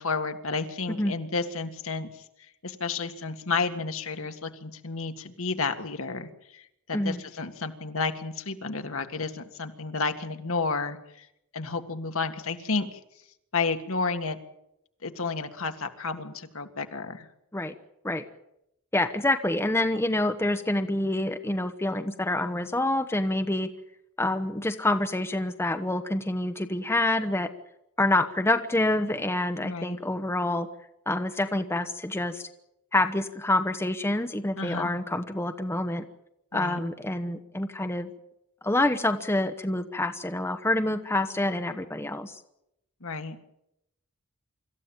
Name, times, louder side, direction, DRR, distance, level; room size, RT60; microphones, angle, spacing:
voice 1, 0.0-2.2 2.6-11.3 11.5-13.0 13.5-14.4 15.0-17.3 29.6-30.0 34.6-34.9 36.5-36.8 43.0-43.4, left 4 dB, 65° left, 7 dB, 1.9 m, -31 dB
voice 2, 18.9-23.7 24.2-27.5 28.0-30.7 31.1-32.5 32.9-36.1 36.5-38.1 38.6-42.4, left 1 dB, 10° left, 7 dB, 0.9 m, -27 dB
25.5 x 14.5 x 8.8 m, 0.83 s
head